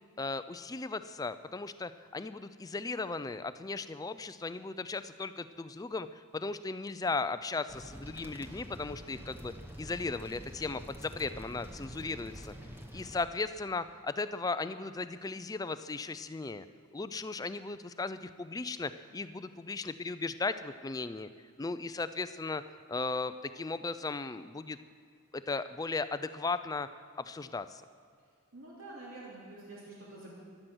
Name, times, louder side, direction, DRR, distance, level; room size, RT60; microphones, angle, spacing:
voice 1, 0.2-9.5 9.8-12.5 12.9-16.7 16.9-21.3 21.6-22.6 22.9-24.8 25.3-26.9 27.2-27.8, left 3 dB, 15° left, 12 dB, 0.3 m, -36 dB
sound 1, 7.7-13.2, equal, 10° right, 1.0 m, -47 dB
voice 2, 28.5-30.4, right 2 dB, 70° right, -6 dB, 2.9 m, -47 dB
15.5 x 11.5 x 6.2 m, 2.2 s
head